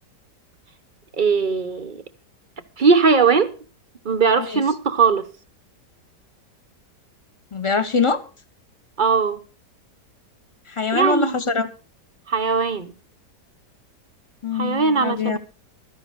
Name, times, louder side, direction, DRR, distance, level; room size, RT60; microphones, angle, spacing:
voice 1, 1.2-2.0 2.8-3.5 4.0-5.3 9.0-9.4 10.9-11.4 12.3-12.9 14.5-15.4, right 5 dB, 45° right, 0.6 m, -19 dB
voice 2, 7.5-8.2 10.8-11.7 14.4-15.4, left 5 dB, 30° left, 0.6 m, -23 dB
13.0 x 10.5 x 5.1 m
omnidirectional pair, 1.8 m